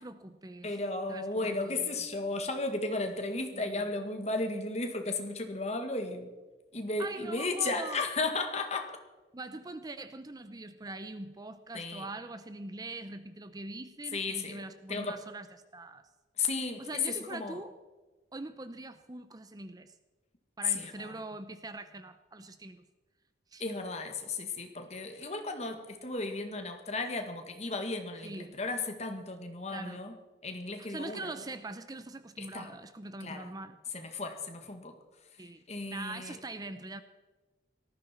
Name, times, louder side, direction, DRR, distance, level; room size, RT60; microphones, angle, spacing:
voice 1, 0.0-0.7 1.1-1.9 3.5-3.7 7.0-8.0 9.3-16.1 16.8-17.7 18.3-19.9 20.6-22.8 23.5-23.6 25.2-25.3 28.2-28.6 29.7-30.0 30.8-33.8 35.4-35.6 35.9-37.0, right 2 dB, 20° right, 11 dB, 0.6 m, -43 dB
voice 2, 0.6-6.3 6.7-8.9 11.7-12.1 14.1-14.6 14.9-15.2 16.4-17.6 20.7-21.1 23.6-30.1 30.4-31.3 32.4-32.7 33.2-33.5 33.9-34.9 35.7-36.4, left 3 dB, 35° left, 5 dB, 1.8 m, -34 dB
18.5 x 14.5 x 4.4 m, 1.2 s
head